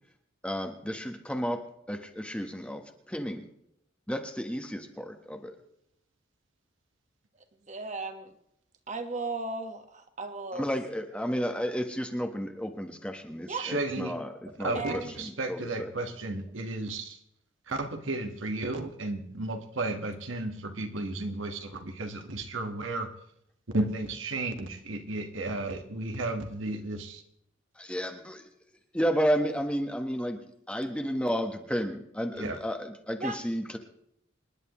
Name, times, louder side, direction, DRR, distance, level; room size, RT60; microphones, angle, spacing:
voice 1, 0.4-3.5 4.1-5.5 10.5-15.9 27.8-28.4 28.9-30.4 30.7-33.8, equal, 5° left, 5 dB, 1.3 m, -32 dB
voice 2, 7.7-8.3 8.9-10.6 13.5-13.6 14.7-15.1 33.2-33.4, right 3 dB, 35° right, 7 dB, 1.5 m, -35 dB
voice 3, 13.6-14.1 14.6-17.2 17.7-23.1 23.7-27.2 32.4-32.6, right 2 dB, 75° right, 5 dB, 1.7 m, -33 dB
27.0 x 11.0 x 3.1 m, 0.75 s
head